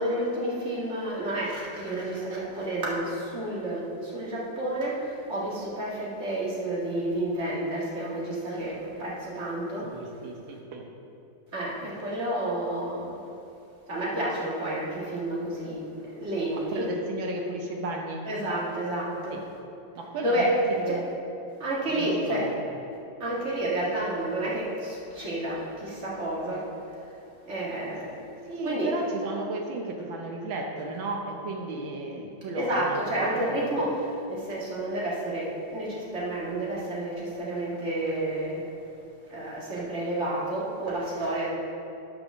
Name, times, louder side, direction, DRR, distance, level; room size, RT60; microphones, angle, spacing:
voice 1, 0.0-9.9 11.5-13.2 13.9-15.8 16.0-16.9 18.2-19.4 20.2-20.5 20.9-21.0 21.6-22.5 23.2-26.7 27.5-28.2 28.6-28.9 32.5-38.7 39.3-41.5, right 1 dB, 35° right, -6 dB, 2.2 m, -30 dB
voice 2, 9.8-10.9 16.5-18.3 19.3-19.4 20.0-20.5 20.8-21.0 21.9-22.6 28.5-33.8, right 2 dB, 80° right, 2 dB, 1.7 m, -34 dB
9.4 x 5.2 x 6.2 m, 2.8 s
omnidirectional pair, 2.1 m